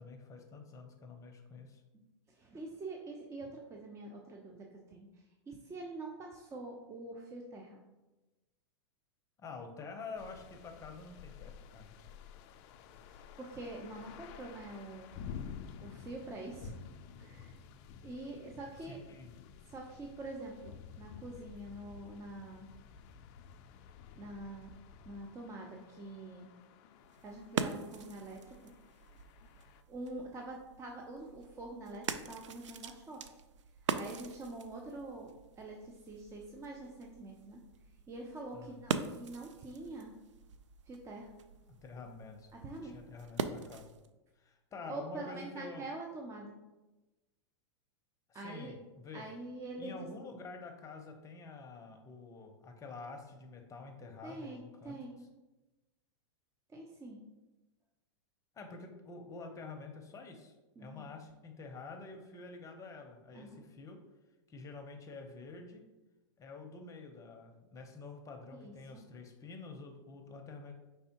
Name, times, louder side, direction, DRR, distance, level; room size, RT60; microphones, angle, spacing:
voice 1, 0.0-1.8 9.4-11.9 18.9-19.3 38.5-38.8 41.7-43.9 44.4-45.9 48.3-49.3 49.8-55.0 58.5-60.5 60.8-64.0 64.5-65.8 66.4-70.7, left 4 dB, 20° left, 4 dB, 0.7 m, -48 dB
voice 2, 1.9-5.1 5.5-7.8 13.1-15.1 15.8-16.8 17.2-17.6 18.0-19.0 19.7-22.7 24.2-24.7 25.1-26.5 27.2-28.7 29.9-33.2 33.9-35.3 35.6-37.6 38.1-40.1 40.9-41.3 42.5-42.9 44.9-46.6 48.3-48.7 49.1-50.1 54.2-55.1 56.7-57.2 60.8-61.1 63.3-63.6 68.5-69.1, right 2 dB, 20° right, 0 dB, 0.5 m, -45 dB
sound 1, 10.2-29.8, left 7 dB, 45° left, 0.4 m, -52 dB
sound 2, 27.0-44.1, right 6 dB, 85° right, 0.4 m, -43 dB
5.4 x 3.4 x 2.9 m, 1.1 s
hypercardioid pair, 115°, 15 cm